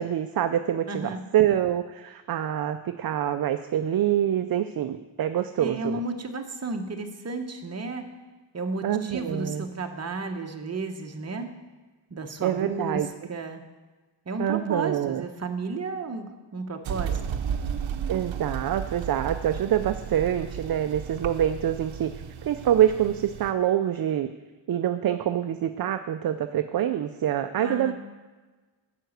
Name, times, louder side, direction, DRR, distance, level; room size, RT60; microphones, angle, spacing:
voice 1, 0.0-6.0 8.8-9.6 12.4-13.1 14.4-15.2 18.1-22.1 22.4-24.3 24.7-27.9, right 10 dB, 55° right, 8 dB, 0.5 m, -25 dB
voice 2, 0.9-1.2 5.6-8.1 8.5-11.5 12.1-13.6 14.3-17.4 27.6-27.9, right 3 dB, 35° right, 4 dB, 1.0 m, -33 dB
sound 1, 16.8-23.5, right 7 dB, 85° right, 0.7 m, -34 dB
9.1 x 6.0 x 7.9 m, 1.2 s
wide cardioid pair, 145°, 45 cm